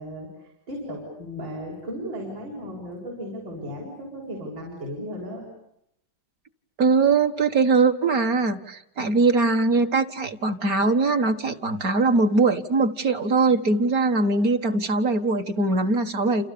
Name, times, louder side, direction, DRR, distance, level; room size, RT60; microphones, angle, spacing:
voice 1, 0.0-5.5 9.0-9.2, equal, 65° right, -3 dB, 7.9 m, -36 dB
voice 2, 6.8-16.5, right 3 dB, 45° right, 6 dB, 2.0 m, -21 dB
30.0 x 29.0 x 6.9 m, 0.77 s
omnidirectional pair, 2.2 m